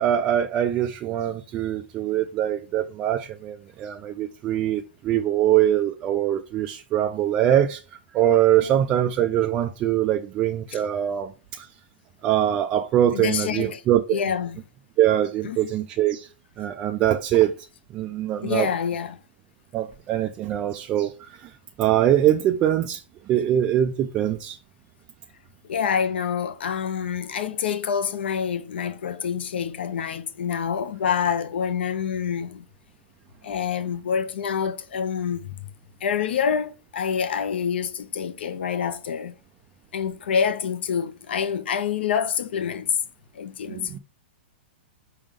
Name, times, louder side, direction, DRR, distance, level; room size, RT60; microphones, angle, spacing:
voice 1, 0.0-11.7 12.2-14.2 15.0-16.3 16.6-17.5 17.9-18.7 19.7-21.5 21.8-24.6 43.7-44.0, right 11 dB, 15° right, 0.3 m, -23 dB
voice 2, 13.1-13.8 14.1-14.6 15.4-15.7 18.4-19.2 25.6-32.6 33.4-35.5 36.0-39.3 39.9-42.9 43.3-44.0, left 7 dB, 70° left, 1.0 m, -27 dB
6.0 x 3.6 x 5.1 m
hypercardioid pair, 175°, 6 cm